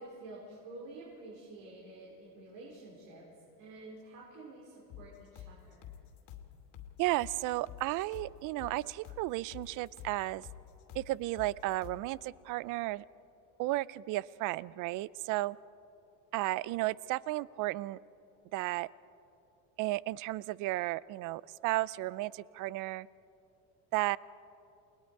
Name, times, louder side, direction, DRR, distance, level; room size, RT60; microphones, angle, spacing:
voice 1, 0.0-3.3 3.6-5.9, right 2 dB, 90° right, -4 dB, 4.7 m, -49 dB
sound 1, 4.9-12.1, left 10 dB, 65° left, 2.4 m, -49 dB
voice 2, 7.0-10.5 10.9-13.1 13.6-15.6 16.3-18.0 18.5-18.9 19.8-23.1 23.9-24.2, right 18 dB, 50° right, 21 dB, 0.5 m, -33 dB
29.5 x 20.5 x 4.7 m, 2.8 s
cardioid pair, 135°, 40 cm